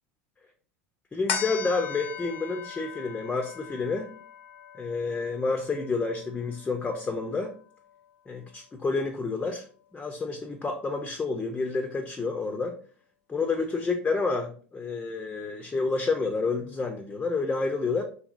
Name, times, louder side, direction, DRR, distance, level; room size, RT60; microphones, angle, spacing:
voice 1, 1.1-4.1 4.7-7.5 8.3-9.7 9.9-12.8 13.3-18.0, left 4 dB, 15° left, 4 dB, 0.4 m, -29 dB
sound 1, 1.3-8.0 8.5-8.6, left 7 dB, 75° left, 0.5 m, -39 dB
2.8 x 2.7 x 2.4 m, 0.43 s
hypercardioid pair, 90°, 7 cm